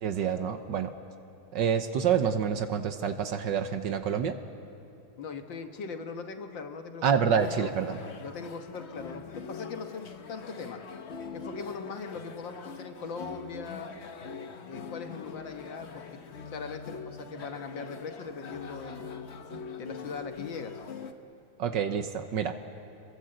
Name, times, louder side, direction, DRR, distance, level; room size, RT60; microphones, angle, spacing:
voice 1, 0.0-0.9 1.5-4.4 7.0-8.0 21.6-22.5, right 7 dB, 65° right, 8 dB, 1.4 m, -27 dB
voice 2, 5.2-7.7 8.2-10.8 11.3-13.9 14.7-16.0 16.5-19.0 19.8-20.8, left 5 dB, 60° left, 6 dB, 1.9 m, -40 dB
sound 1, 7.4-21.1, left 5 dB, 45° left, 0.9 m, -43 dB
27.5 x 22.0 x 7.8 m, 2.8 s
omnidirectional pair, 2.4 m